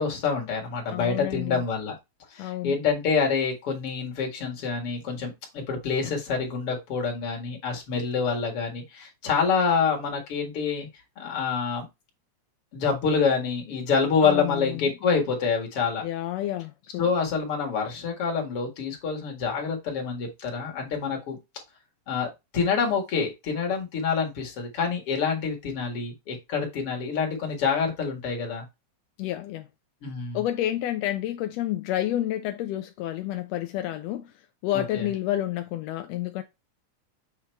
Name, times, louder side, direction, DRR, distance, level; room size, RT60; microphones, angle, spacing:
voice 1, 0.0-1.9 2.3-10.9 11.2-11.9 12.7-16.0 17.0-21.4 22.1-22.3 22.5-28.6 30.0-30.4 34.7-35.1, left 5 dB, 50° left, 2.4 m, -27 dB
voice 2, 0.9-1.6 2.4-2.8 14.2-14.9 16.0-17.1 29.2-29.7 30.3-34.3 34.6-36.4, left 13 dB, 80° left, 1.5 m, -29 dB
7.2 x 2.9 x 4.4 m
omnidirectional pair, 3.4 m